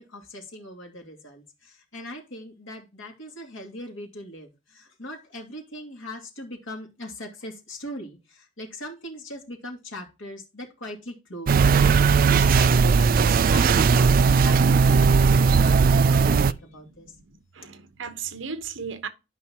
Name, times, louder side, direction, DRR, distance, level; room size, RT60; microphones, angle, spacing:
voice 1, 0.0-15.6 16.1-17.2, left 1 dB, 85° left, 2.6 m, -40 dB
sound 1, 11.5-16.5, right 5 dB, 45° right, 0.3 m, -18 dB
voice 2, 16.8-19.1, right 6 dB, 80° right, 1.1 m, -36 dB
12.0 x 5.6 x 2.9 m
head